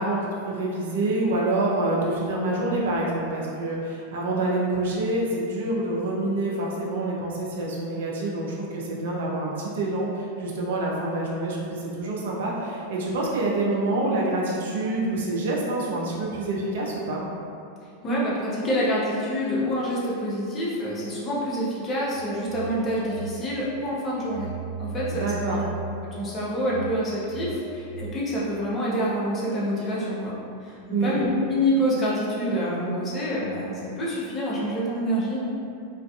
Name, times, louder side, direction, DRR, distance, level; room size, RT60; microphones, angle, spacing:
voice 1, 0.0-17.2 25.1-25.6 30.9-31.2, right 2 dB, 55° right, -4 dB, 0.4 m, -27 dB
voice 2, 18.0-24.5 24.8-25.6 26.0-30.3 30.6-35.5, equal, 25° left, -7 dB, 0.6 m, -27 dB
Telephone, 22.1-23.9 24.3-28.4, right 4 dB, 50° left, 1.1 m, -37 dB
2.4 x 2.3 x 2.2 m, 2.5 s
figure-of-eight pair, 90°, 0 cm